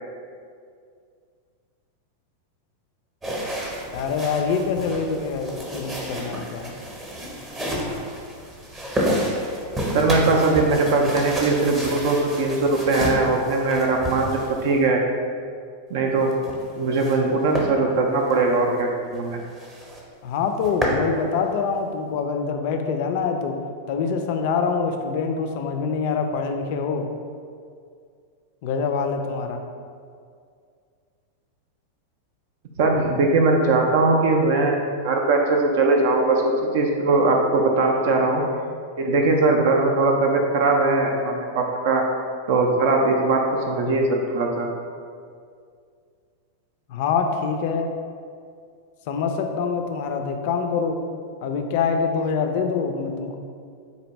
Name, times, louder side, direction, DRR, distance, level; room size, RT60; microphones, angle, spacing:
sound 1, 3.2-14.9 16.2-17.2 17.5-17.7 18.2-18.4 18.8-18.9 19.2-19.3 19.6-20.0 20.4-21.0, equal, 15° right, 0.8 m, -30 dB
voice 1, 3.9-6.7 20.2-23.5 23.9-27.1 28.6-29.6 46.9-47.9 49.1-51.0 51.4-53.4, left 5 dB, 50° left, 5 dB, 0.3 m, -25 dB
voice 2, 9.9-15.0 15.9-16.3 16.8-19.4 32.8-38.4 39.0-42.0 42.5-44.7, right 3 dB, 50° right, 2 dB, 0.4 m, -20 dB
4.1 x 2.7 x 3.0 m, 2.2 s
figure-of-eight pair, 90°, 0 cm